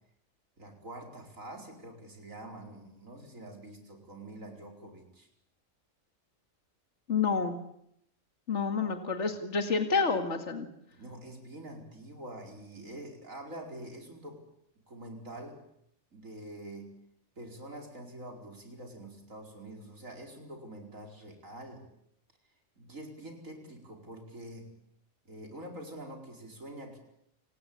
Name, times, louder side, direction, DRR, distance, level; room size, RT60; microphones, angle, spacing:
voice 1, 0.6-5.3 11.0-14.4 14.9-15.6 16.1-16.9 17.4-21.9 22.8-24.7 25.3-27.0, right 1 dB, 80° right, 2 dB, 5.2 m, -46 dB
voice 2, 7.1-7.6 8.5-10.7, left 5 dB, 60° left, 6 dB, 2.4 m, -29 dB
29.0 x 19.0 x 8.8 m, 0.74 s
omnidirectional pair, 1.4 m